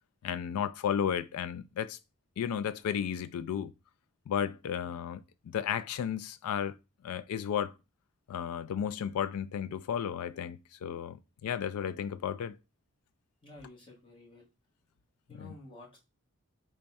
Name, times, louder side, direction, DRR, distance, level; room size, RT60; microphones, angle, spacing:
voice 1, 0.2-2.0 2.4-3.7 4.3-5.2 5.5-6.8 7.0-7.7 8.3-12.6 15.4-15.5, left 8 dB, 85° left, 0.3 m, -33 dB
voice 2, 13.4-14.5 15.3-16.0, left 1 dB, 25° left, 1.0 m, -51 dB
3.5 x 2.2 x 4.0 m
head